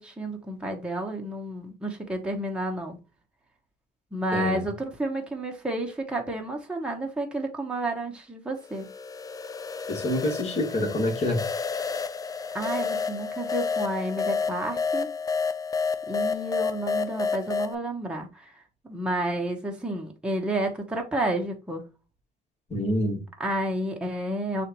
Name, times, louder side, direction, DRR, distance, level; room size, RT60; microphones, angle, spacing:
voice 1, 0.0-3.0 4.1-8.9 12.5-15.1 16.1-18.5 18.8-21.8 23.4-24.7, right 1 dB, 5° right, 1.0 m, -30 dB
voice 2, 4.3-4.7 9.9-11.5 22.7-23.2, left 1 dB, 40° left, 1.9 m, -27 dB
sound 1, 8.7-17.7, left 5 dB, 20° left, 0.4 m, -30 dB
6.4 x 2.5 x 3.0 m
cardioid pair, 110°, 17 cm